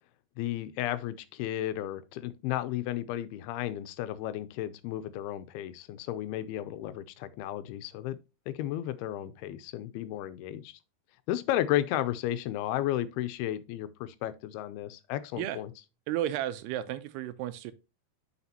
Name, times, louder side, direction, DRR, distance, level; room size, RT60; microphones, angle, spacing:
voice 1, 0.4-8.2 8.5-10.8 11.3-15.7, left 13 dB, 85° left, 2.5 m, -33 dB
voice 2, 16.1-17.7, right 12 dB, 90° right, 2.8 m, -33 dB
8.1 x 5.9 x 2.8 m
omnidirectional pair, 4.6 m